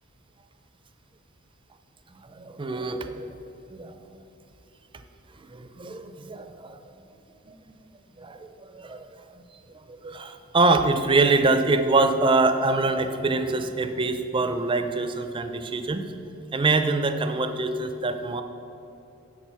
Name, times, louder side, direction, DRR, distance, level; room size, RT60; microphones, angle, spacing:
voice 1, 2.3-3.3 3.7-4.0 5.5-6.8 7.5-7.6 8.2-9.1 10.0-16.1 16.5-18.4, right 3 dB, 25° right, 8 dB, 0.5 m, -24 dB
7.4 x 7.4 x 5.6 m, 3.0 s
head